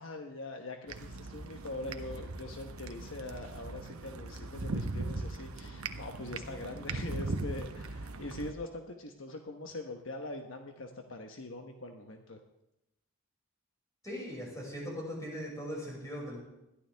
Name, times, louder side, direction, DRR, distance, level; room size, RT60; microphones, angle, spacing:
voice 1, 0.0-12.4, left 2 dB, 65° left, 4 dB, 1.2 m, -43 dB
sound 1, 0.9-8.5, right 2 dB, 80° right, 1.0 m, -39 dB
voice 2, 14.0-16.4, equal, 15° left, -4 dB, 6.0 m, -39 dB
21.0 x 13.5 x 3.5 m, 0.90 s
head